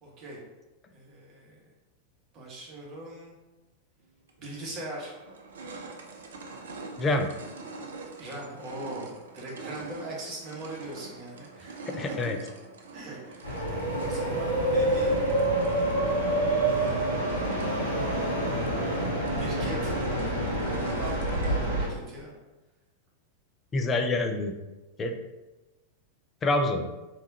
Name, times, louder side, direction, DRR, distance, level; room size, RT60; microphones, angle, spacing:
voice 1, 0.0-0.4 0.9-1.6 2.3-3.4 4.4-5.1 8.2-12.3 12.9-15.3 16.7-17.7 19.3-19.9 20.5-22.3, right 1 dB, 35° right, -3 dB, 1.1 m, -40 dB
sound 1, 4.3-4.4 4.9-21.7, right 3 dB, 65° right, 0.4 m, -45 dB
voice 2, 7.0-7.3 12.0-12.4 23.7-24.5 25.0-25.2 26.4-26.9, left 2 dB, 20° left, 5 dB, 0.4 m, -26 dB
sound 2, 13.4-21.9, right 1 dB, 85° left, 1.1 m, -27 dB
3.5 x 2.9 x 2.7 m, 1.1 s
figure-of-eight pair, 90°, 0 cm